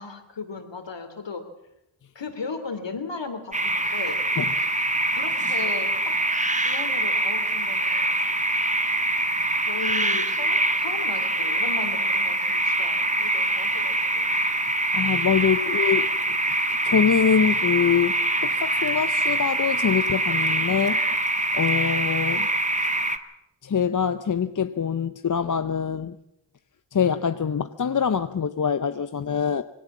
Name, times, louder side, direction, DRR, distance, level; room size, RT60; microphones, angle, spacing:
voice 1, 0.0-1.4 2.1-4.2 5.1-6.2 6.5-8.2 9.7-14.4 15.6-16.0 16.4-16.5, left 4 dB, 65° left, 3.1 m, -36 dB
sound 1, 3.5-23.2, right 2 dB, 15° right, 1.4 m, -24 dB
voice 2, 14.9-18.2 18.4-21.3 21.5-22.5 23.6-26.2 26.9-29.6, left 7 dB, 40° left, 0.7 m, -24 dB
20.5 x 18.0 x 7.3 m
cardioid pair, 65°, 48 cm